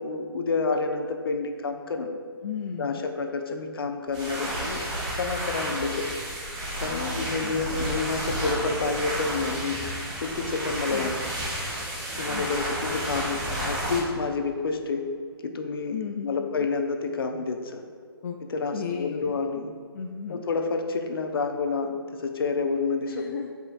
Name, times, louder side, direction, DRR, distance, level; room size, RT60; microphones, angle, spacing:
voice 1, 0.0-2.1 2.8-6.1 6.8-9.8 10.2-11.1 12.2-15.0 15.4-16.0 16.2-17.8 18.5-19.7 20.3-23.3, left 4 dB, 65° left, 4 dB, 1.0 m, -29 dB
voice 2, 2.4-3.0 6.9-7.5 10.9-11.1 12.3-12.5 15.9-16.7 18.2-18.4 18.7-19.3 19.9-20.4 23.0-23.5, left 7 dB, 45° left, 1 dB, 0.5 m, -35 dB
sound 1, 4.1-14.0, right 1 dB, 20° right, 1.6 m, -31 dB
13.0 x 5.4 x 2.6 m, 2.1 s
hypercardioid pair, 160°, 13 cm